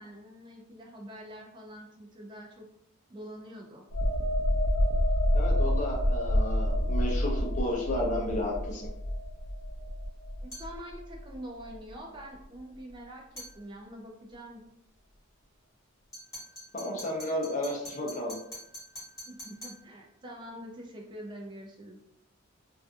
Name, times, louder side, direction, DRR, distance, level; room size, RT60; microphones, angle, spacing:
voice 1, 0.0-2.7 3.1-3.8 10.4-14.6 19.3-22.0, equal, 25° right, 0 dB, 0.3 m, -45 dB
sound 1, 3.9-11.4 11.7-11.9, equal, 80° left, 0.5 m, -28 dB
voice 2, 5.3-8.9 16.7-18.3, left 1 dB, 35° left, -2 dB, 0.6 m, -32 dB
sound 2, 10.5-10.8 13.4-13.6 16.1-19.9, equal, 15° left, 1.4 m, -45 dB
2.5 x 2.5 x 2.3 m, 0.79 s
head